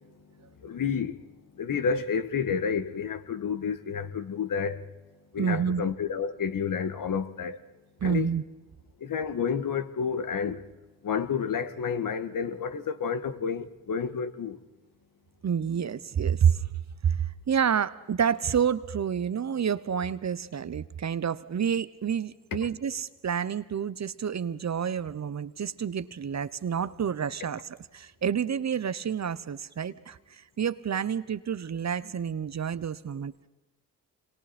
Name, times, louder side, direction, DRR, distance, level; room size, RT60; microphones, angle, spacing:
voice 1, 0.6-1.2 1.6-4.8 5.3-7.6 8.0-8.3 9.0-10.6 11.0-14.6, left 6 dB, 55° left, 1.7 m, -30 dB
voice 2, 5.4-5.8 8.0-8.4 15.4-16.7 17.0-33.3, right 7 dB, 45° right, 1.0 m, -29 dB
26.5 x 22.5 x 4.4 m
supercardioid pair, 55°, 39 cm